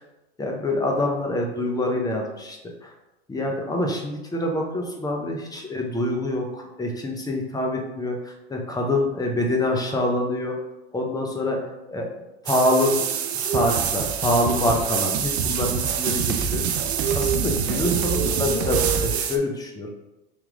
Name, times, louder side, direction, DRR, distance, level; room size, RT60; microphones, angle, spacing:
voice 1, 0.4-2.9 3.3-10.6 10.9-11.6 11.9-12.1 12.4-13.0 13.3-16.8 17.1-19.9, left 1 dB, 10° left, 1 dB, 0.8 m, -25 dB
sound 1, 12.5-19.4, right 8 dB, 90° right, 0.5 m, -26 dB
sound 2, 13.5-19.1, right 5 dB, 50° right, 0.6 m, -29 dB
3.6 x 3.0 x 3.6 m, 0.97 s
hypercardioid pair, 105°, 31 cm